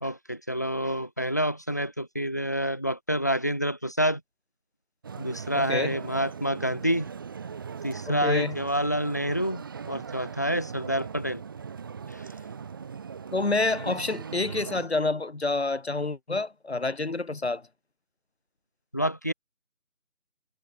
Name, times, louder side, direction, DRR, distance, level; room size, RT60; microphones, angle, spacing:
voice 1, 0.0-4.2 5.2-7.1 7.8-11.4 12.1-12.3 13.9-14.0 18.9-19.3, equal, 15° left, 1.1 m, -28 dB
sound 1, 5.0-14.9, right 6 dB, 15° right, 2.7 m, -39 dB
voice 2, 5.5-6.0 8.1-8.6 13.3-17.6, left 3 dB, 50° left, 2.3 m, -28 dB
figure-of-eight pair, 165°, 40 cm